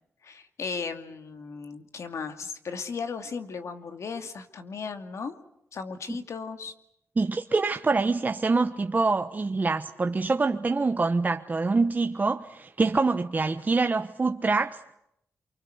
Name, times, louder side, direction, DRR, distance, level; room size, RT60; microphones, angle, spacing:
voice 1, 0.2-5.4 5.7-6.7, left 5 dB, 70° left, 2.5 m, -36 dB
voice 2, 7.2-14.9, right 3 dB, 35° right, 1.1 m, -25 dB
28.5 x 24.5 x 8.0 m
cardioid pair, 90°, 5 cm